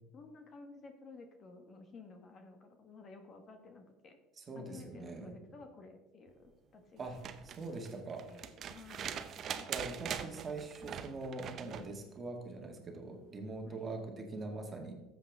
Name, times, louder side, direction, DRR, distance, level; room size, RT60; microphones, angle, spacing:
voice 1, 0.1-4.2 4.5-7.1 7.7-10.1 10.8-11.0 13.6-13.8, left 3 dB, 40° left, 6 dB, 1.4 m, -54 dB
voice 2, 4.4-5.3 7.0-7.2 7.4-8.2 9.7-14.9, right 3 dB, 30° right, 3 dB, 1.9 m, -43 dB
sound 1, 7.0-11.9 13.5-13.6, right 8 dB, 45° right, 0.7 m, -43 dB
13.0 x 7.7 x 3.6 m, 1.1 s
supercardioid pair, 105°, 0 cm